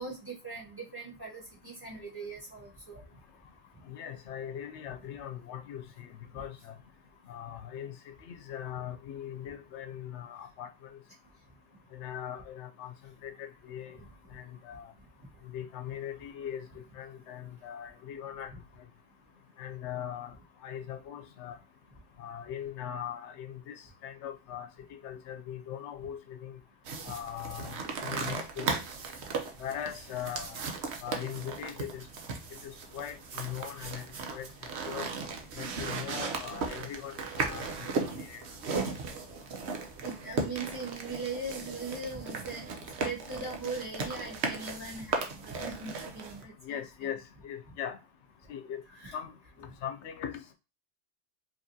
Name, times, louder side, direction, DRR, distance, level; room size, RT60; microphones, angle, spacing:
voice 1, 0.0-3.0 40.0-42.7 43.0-47.1 49.0-49.1, right 3 dB, 20° right, 1.8 m, -40 dB
voice 2, 3.9-6.1 6.3-6.7 7.3-10.9 11.9-12.9 13.2-14.0 14.3-14.9 15.4-18.5 19.6-20.3 20.6-21.6 22.2-24.7 25.0-26.6 27.1-28.7 29.6-30.6 31.0-32.0 32.6-34.1 34.3-34.5 34.9-35.1 35.6-37.9 38.2-38.4 46.6-48.0 48.5-48.8 49.1-49.3 49.6-50.5, left 9 dB, 85° left, 0.9 m, -40 dB
sound 1, 26.9-46.4, right 4 dB, 75° right, 1.0 m, -36 dB
5.0 x 2.9 x 2.7 m
omnidirectional pair, 1.2 m